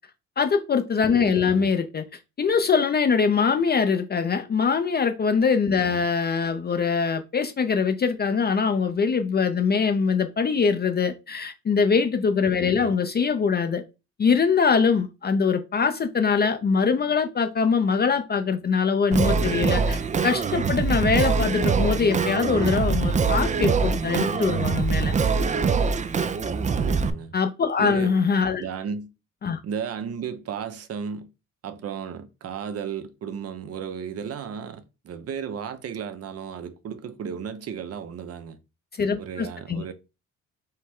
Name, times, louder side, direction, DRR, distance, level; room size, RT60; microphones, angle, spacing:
voice 1, 0.4-2.0 2.4-13.8 14.2-25.1 27.3-28.6 29.4-29.6 39.0-39.8, left 5 dB, 35° left, 0.5 m, -23 dB
voice 2, 1.2-1.7 5.9-6.1 12.6-12.9 26.8-27.3 27.8-28.2 28.6-29.1 29.6-31.3 31.6-38.6 39.2-39.9, right 7 dB, 55° right, 0.7 m, -34 dB
Singing, 19.1-27.1, right 5 dB, 25° right, 0.4 m, -23 dB
5.4 x 2.1 x 3.6 m
cardioid pair, 90°, 30 cm